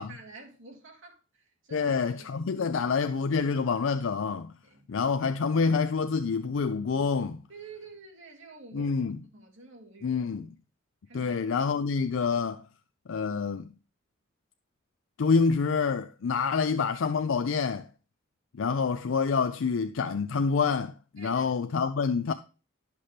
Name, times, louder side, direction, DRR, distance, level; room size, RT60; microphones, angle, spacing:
voice 1, 0.0-2.3 2.6-2.7 4.6-4.9 7.5-8.9 9.3-10.2 11.1-11.4 18.7-18.8 21.2-21.4, right 4 dB, 70° right, 2.4 m, -49 dB
voice 2, 1.7-4.5 4.9-7.4 8.7-9.2 10.0-10.5 11.1-12.6 13.1-13.7 15.2-17.9 18.5-22.3, left 5 dB, 75° left, 0.4 m, -27 dB
11.0 x 6.0 x 3.3 m
head